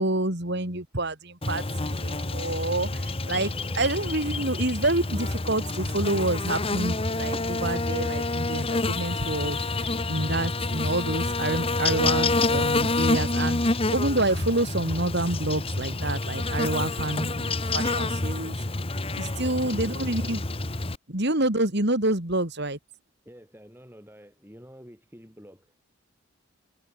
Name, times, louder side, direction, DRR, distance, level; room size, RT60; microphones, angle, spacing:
voice 1, 0.0-3.5 3.7-18.6 19.2-20.4 21.1-22.8, right 2 dB, 50° right, 3.1 m, -28 dB
Buzz, 1.4-21.0, left 2 dB, 25° left, 1.3 m, -28 dB
voice 2, 3.3-4.2 4.4-4.5 19.4-20.5 23.3-25.8, equal, 10° right, 7.4 m, -49 dB
head